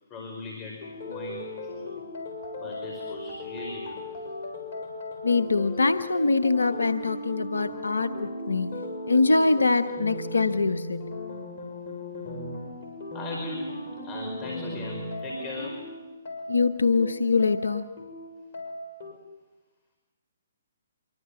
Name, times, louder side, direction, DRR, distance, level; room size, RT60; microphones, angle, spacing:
voice 1, 0.1-1.9 2.6-4.2 5.7-5.8 9.5-9.7 13.1-13.8 14.0-15.9 17.0-17.5 17.7-17.8, left 3 dB, 25° left, 2 dB, 5.2 m, -39 dB
sound 1, 0.8-19.1, left 1 dB, 50° left, 7.2 m, -37 dB
voice 2, 5.2-8.8 9.1-11.1 16.5-17.8, left 3 dB, 85° left, 10 dB, 1.0 m, -23 dB
26.0 x 24.0 x 7.6 m, 1.2 s
figure-of-eight pair, 135°, 0 cm